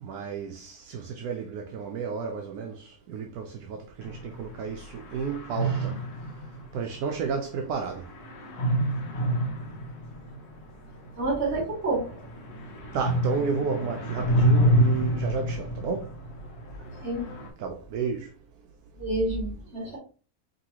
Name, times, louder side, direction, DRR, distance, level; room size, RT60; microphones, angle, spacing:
voice 1, 0.0-6.0 6.7-8.1 12.9-16.1 17.6-18.3, right 5 dB, 75° right, 1.1 m, -32 dB
sound 1, 4.0-17.5, equal, 90° left, 1.5 m, -29 dB
voice 2, 11.2-12.2 17.0-17.3 19.0-20.0, right 2 dB, 40° right, 2.4 m, -28 dB
5.2 x 3.0 x 2.9 m
omnidirectional pair, 1.6 m